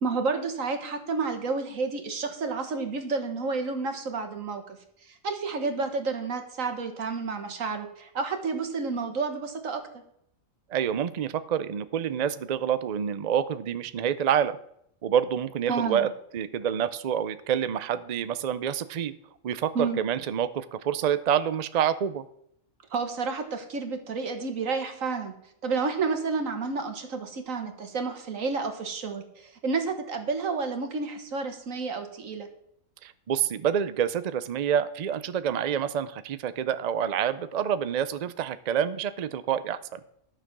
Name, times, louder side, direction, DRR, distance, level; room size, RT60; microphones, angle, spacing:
voice 1, 0.0-4.8 5.1-10.0 15.7-16.1 19.8-20.0 22.9-25.3 25.6-32.5, right 4 dB, 65° right, 6 dB, 1.8 m, -30 dB
voice 2, 10.7-14.6 15.0-16.1 16.3-19.1 19.4-22.2 33.0-40.0, right 9 dB, 90° right, 13 dB, 0.3 m, -27 dB
11.5 x 6.8 x 6.1 m, 0.72 s
omnidirectional pair, 1.5 m